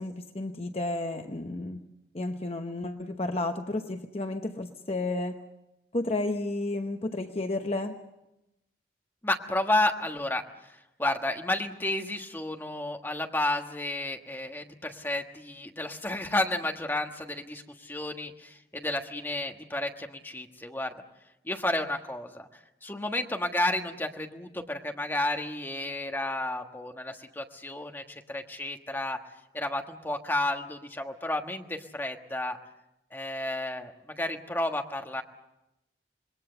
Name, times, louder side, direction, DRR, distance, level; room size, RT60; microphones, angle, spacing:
voice 1, 0.0-1.8 2.1-5.4 5.9-8.0, left 2 dB, 35° left, 6 dB, 0.9 m, -32 dB
voice 2, 9.2-10.7 11.0-20.9 21.4-22.5 22.8-29.2 29.5-32.6 33.1-35.2, left 1 dB, 10° left, 3 dB, 1.4 m, -31 dB
26.5 x 21.5 x 6.9 m, 0.93 s
head